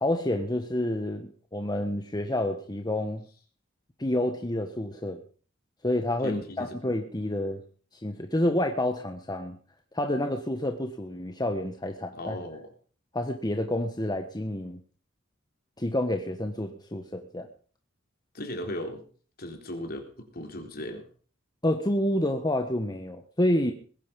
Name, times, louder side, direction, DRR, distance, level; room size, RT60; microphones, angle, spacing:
voice 1, 0.0-3.2 4.0-5.2 5.8-7.6 7.9-9.6 9.9-12.4 13.1-14.8 15.8-17.5 21.6-23.7, left 1 dB, 20° left, 5 dB, 1.4 m, -29 dB
voice 2, 6.2-6.8 12.1-12.7 18.3-19.0 19.4-21.0, left 1 dB, 50° left, 4 dB, 3.9 m, -37 dB
21.0 x 11.0 x 5.4 m, 0.43 s
head